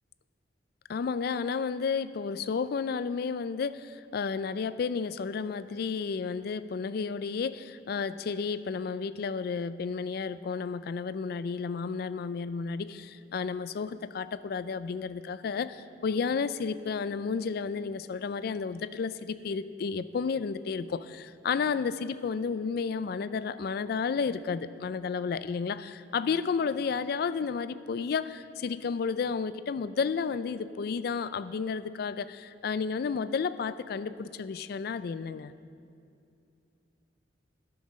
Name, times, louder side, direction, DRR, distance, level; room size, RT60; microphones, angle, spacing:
voice 1, 0.9-35.5, left 5 dB, 60° left, 15 dB, 0.3 m, -32 dB
12.0 x 6.0 x 6.3 m, 2.5 s
head